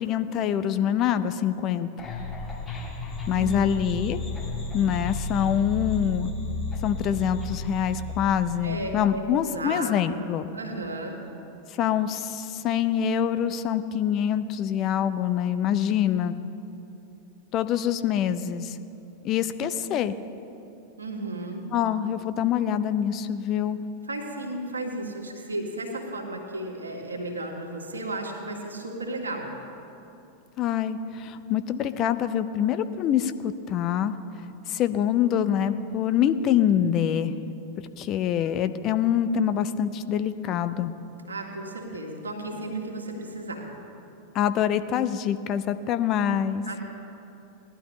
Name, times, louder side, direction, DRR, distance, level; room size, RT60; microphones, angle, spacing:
voice 1, 0.0-1.9 3.3-4.2 4.7-6.3 6.8-10.5 11.7-16.3 17.5-18.8 19.2-20.1 21.7-23.8 30.6-34.1 34.7-37.3 38.0-40.9 44.3-46.6, left 9 dB, 35° left, 11 dB, 0.5 m, -25 dB
sound 1, 2.0-9.2, left 3 dB, 20° left, 2.9 m, -33 dB
voice 2, 3.3-3.9 8.6-10.2 10.5-11.2 21.0-21.7 24.1-29.5 41.3-43.6 46.6-46.8, right 2 dB, 75° right, 0 dB, 1.9 m, -34 dB
19.0 x 12.0 x 3.1 m, 2.8 s
figure-of-eight pair, 90°, 0 cm